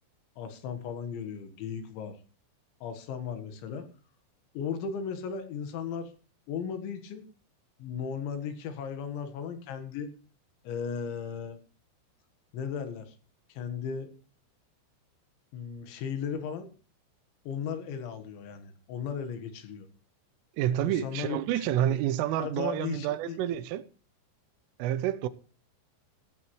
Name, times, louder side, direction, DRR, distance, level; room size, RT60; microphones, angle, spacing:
voice 1, 0.4-2.2 2.8-3.9 4.6-6.1 6.5-7.2 7.8-10.1 10.7-11.6 12.5-13.2 13.5-14.1 15.5-16.7 17.5-19.9 20.8-22.0 22.4-23.4, left 7 dB, 75° left, 3.8 m, -36 dB
voice 2, 20.6-23.8 24.8-25.3, right 12 dB, 90° right, 3.4 m, -29 dB
15.0 x 13.5 x 3.2 m
omnidirectional pair, 5.6 m